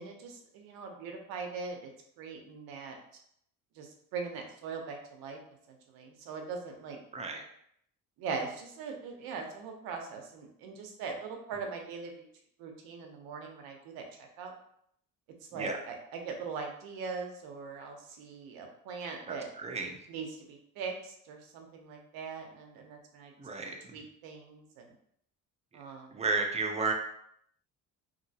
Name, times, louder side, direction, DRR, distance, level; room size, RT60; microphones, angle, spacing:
voice 1, 0.0-1.9 2.2-3.0 3.8-5.4 5.7-7.0 8.2-12.2 12.6-14.5 15.5-19.5 20.1-23.3 23.9-24.9 25.7-26.2, right 5 dB, 85° right, 3 dB, 0.8 m, -41 dB
voice 2, 7.1-7.4 15.5-15.8 19.3-20.0 23.4-24.0 26.1-26.9, right 3 dB, 20° right, 2 dB, 0.5 m, -33 dB
3.0 x 2.8 x 2.7 m, 0.70 s
cardioid pair, 100°, 35 cm